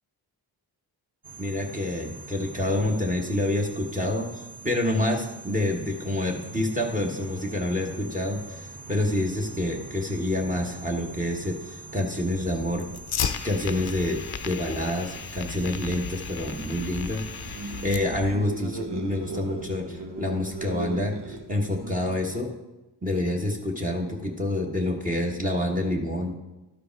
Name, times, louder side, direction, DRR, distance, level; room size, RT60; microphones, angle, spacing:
sound 1, 1.2-18.2, right 3 dB, 55° right, 2.2 m, -43 dB
voice 1, 1.4-12.9 13.4-14.2 14.4-22.5 23.0-26.3, left 1 dB, 20° right, 1 dB, 1.4 m, -28 dB
Fire, 12.3-18.3, left 8 dB, 60° left, 0.6 m, -35 dB
sound 2, 17.3-22.4, right 2 dB, 70° right, 1.1 m, -37 dB
12.0 x 5.1 x 4.6 m, 1.0 s
cardioid pair, 60°, 42 cm